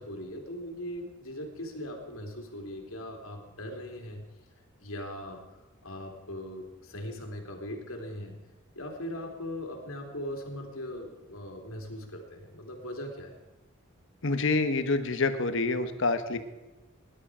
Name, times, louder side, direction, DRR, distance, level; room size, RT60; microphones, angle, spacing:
voice 1, 0.0-4.3 4.8-5.4 5.8-8.4 8.7-13.3, left 1 dB, 80° left, 2 dB, 3.3 m, -39 dB
voice 2, 14.2-16.4, left 3 dB, 60° left, 9 dB, 1.2 m, -27 dB
19.5 x 11.5 x 5.0 m, 1.1 s
head